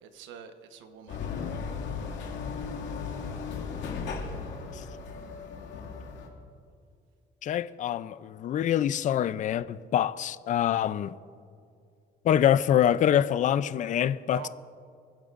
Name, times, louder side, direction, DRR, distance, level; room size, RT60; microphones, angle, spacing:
voice 1, 0.0-1.2 14.3-14.5, right 8 dB, 90° right, 1.1 m, -45 dB
sound 1, 1.1-6.3, left 5 dB, 75° left, 2.1 m, -36 dB
voice 2, 7.4-11.1 12.2-14.5, left 10 dB, 40° left, 0.4 m, -25 dB
27.0 x 10.5 x 2.5 m
cardioid pair, 120°, 19 cm